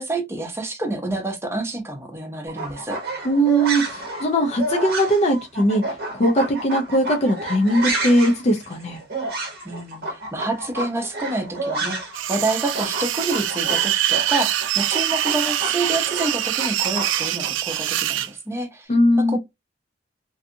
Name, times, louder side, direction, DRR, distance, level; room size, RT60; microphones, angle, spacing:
voice 1, 0.0-3.0 9.6-12.0 12.3-18.9 19.2-19.4, right 2 dB, 15° right, 0.6 m, -28 dB
sound 1, 2.5-12.2 12.5-17.5, right 2 dB, 55° right, 0.7 m, -30 dB
voice 2, 3.2-5.8 6.1-9.0 18.9-19.4, equal, 35° left, 0.5 m, -19 dB
sound 2, 12.1-18.3, right 12 dB, 85° right, 0.3 m, -24 dB
2.6 x 2.4 x 2.5 m
head